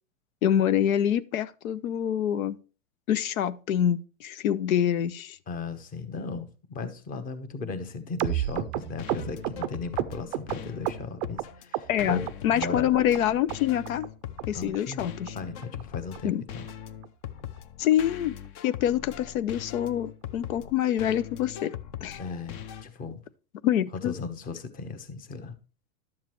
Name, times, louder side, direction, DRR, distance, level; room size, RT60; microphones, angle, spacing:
voice 1, 0.4-2.6 3.1-5.4 11.9-14.1 14.5-15.4 16.2-16.4 17.8-18.4 18.6-21.8 22.0-22.2 23.6-24.1, left 10 dB, 85° left, 0.7 m, -26 dB
voice 2, 5.5-12.9 14.5-16.6 22.2-23.2 23.9-25.5, left 4 dB, 20° left, 0.9 m, -37 dB
sound 1, 8.2-11.4 11.7-12.3 12.6-13.2 13.5-13.6 13.8-14.1 14.4-14.5 14.7-14.9 15.3-15.4 15.6-15.8 16.1-16.2 16.5-16.7 17.0-17.1 17.4-17.6 17.9-18.0, right 14 dB, 35° right, 0.4 m, -31 dB
sound 2, 8.8-22.8, left 10 dB, 35° left, 0.6 m, -41 dB
11.5 x 7.2 x 3.0 m
supercardioid pair, 145°, 41 cm